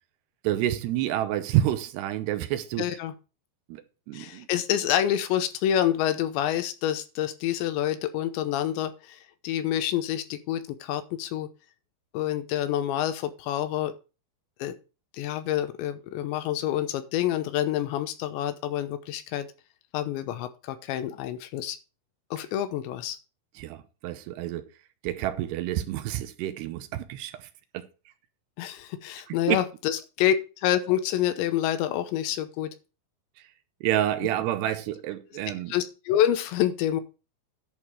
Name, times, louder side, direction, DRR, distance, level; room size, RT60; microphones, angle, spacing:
voice 1, 0.4-2.9 3.7-4.5 23.6-24.7 25.0-27.5 27.7-27.9 29.3-29.6 33.8-35.7, right 13 dB, 80° right, 2.8 m, -28 dB
voice 2, 2.8-3.1 4.1-11.5 12.1-13.9 14.6-14.7 15.1-19.5 19.9-21.8 22.3-23.2 28.6-32.8 35.7-37.0, left 11 dB, 85° left, 3.1 m, -27 dB
11.0 x 4.9 x 5.5 m
omnidirectional pair, 5.1 m